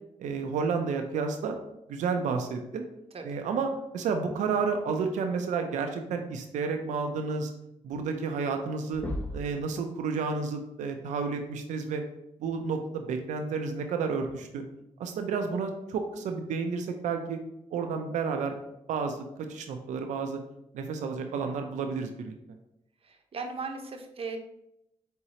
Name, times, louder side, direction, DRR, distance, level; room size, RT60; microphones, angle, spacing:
voice 1, 0.2-1.6 1.9-2.9 3.2-7.5 7.8-9.0 9.3-12.0 12.4-14.6 15.0-17.4 17.7-18.6 18.9-20.4 20.7-22.3, right 5 dB, 85° right, 5 dB, 0.5 m, -31 dB
sound 1, 8.9-9.6 11.3-11.4 13.2-13.4 14.2-14.3, equal, 15° left, 0.8 m, -36 dB
voice 2, 23.0-24.4, right 4 dB, 50° right, 4 dB, 0.7 m, -38 dB
4.4 x 3.7 x 2.8 m, 0.82 s
cardioid pair, 65°, 12 cm